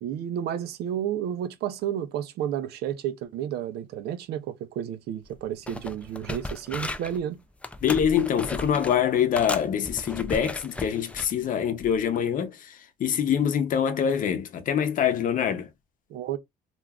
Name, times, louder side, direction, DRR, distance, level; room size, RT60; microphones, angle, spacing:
voice 1, 0.0-7.4 16.1-16.4, right 10 dB, 70° right, 0.5 m, -31 dB
sound 1, 5.2-5.4 5.7-7.2 7.6-9.0 9.4-11.3 11.8-12.0, left 2 dB, 5° left, 0.3 m, -35 dB
voice 2, 7.8-15.7, left 8 dB, 55° left, 0.7 m, -25 dB
2.4 x 2.2 x 3.5 m
cardioid pair, 110°, 17 cm